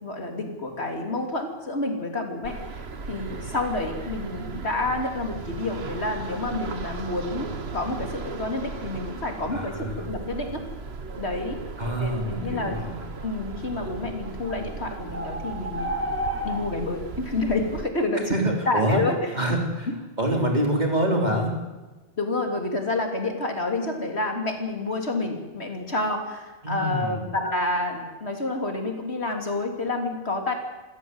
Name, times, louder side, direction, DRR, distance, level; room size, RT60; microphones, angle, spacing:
voice 1, 0.0-2.8 3.1-10.6 11.2-11.6 12.0-12.7 13.2-15.9 16.4-18.3 18.7-19.2 22.2-30.5, left 2 dB, 85° left, 3 dB, 3.4 m, -29 dB
sound 1, 2.4-17.9, right 4 dB, 75° right, 1.6 m, -37 dB
voice 2, 9.5-10.1 11.8-13.1 18.3-19.0 19.3-19.9 20.2-21.5 26.6-27.3, right 1 dB, 40° right, 1 dB, 4.2 m, -26 dB
sound 2, 14.5-14.6 15.1-16.6, equal, 10° right, 3.6 m, -30 dB
27.5 x 13.5 x 8.1 m, 1.2 s
omnidirectional pair, 1.1 m